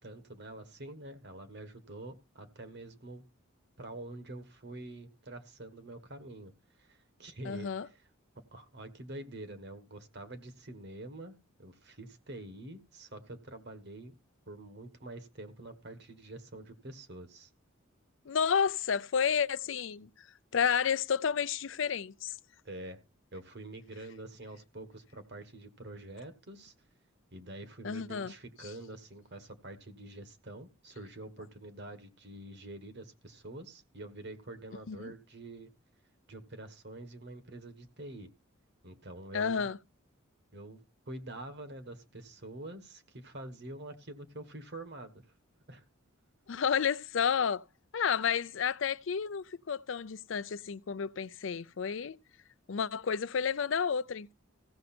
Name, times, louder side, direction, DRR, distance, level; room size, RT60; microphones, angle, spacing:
voice 1, 0.0-3.2 3.8-6.5 6.8-8.1 8.5-11.3 11.6-14.1 14.5-17.5 22.6-23.0 23.3-26.7 27.3-35.7 36.3-38.3 38.8-39.7 40.5-45.2 45.7-45.8, right 2 dB, 55° right, 1.5 m, -46 dB
voice 2, 7.4-7.9 18.3-20.3 20.5-22.4 27.8-28.3 34.9-35.1 39.3-39.8 46.5-47.6 47.9-52.2 52.7-54.3, left 7 dB, 65° left, 0.5 m, -31 dB
15.5 x 6.4 x 4.3 m
head